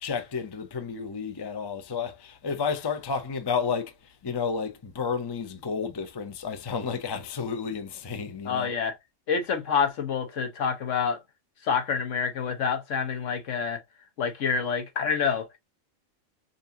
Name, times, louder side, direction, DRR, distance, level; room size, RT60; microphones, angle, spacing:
voice 1, 0.0-3.9 4.2-8.7, left 5 dB, 30° left, 0.4 m, -31 dB
voice 2, 8.4-9.0 9.3-11.2 11.6-13.8 14.2-15.6, left 6 dB, 65° left, 1.2 m, -27 dB
5.3 x 2.6 x 2.6 m
omnidirectional pair, 1.4 m